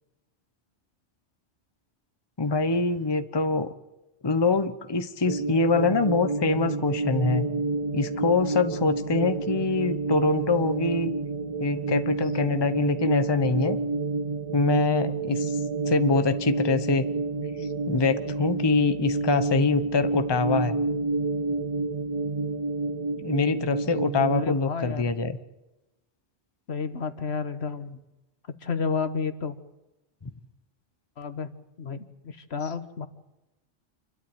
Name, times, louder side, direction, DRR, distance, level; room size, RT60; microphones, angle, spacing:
voice 1, 2.4-3.7 4.2-7.5 7.9-11.1 11.6-13.8 14.5-15.6 15.9-17.0 17.6-20.7 23.2-25.4, left 3 dB, 25° left, 10 dB, 0.9 m, -24 dB
sound 1, 5.3-24.5, right 3 dB, 30° right, 1.4 m, -29 dB
voice 2, 23.9-25.1 26.7-28.0 28.6-29.5 31.2-31.5 31.8-33.1, left 5 dB, 70° left, 10 dB, 1.5 m, -31 dB
27.5 x 12.5 x 9.0 m, 0.99 s
omnidirectional pair, 1.2 m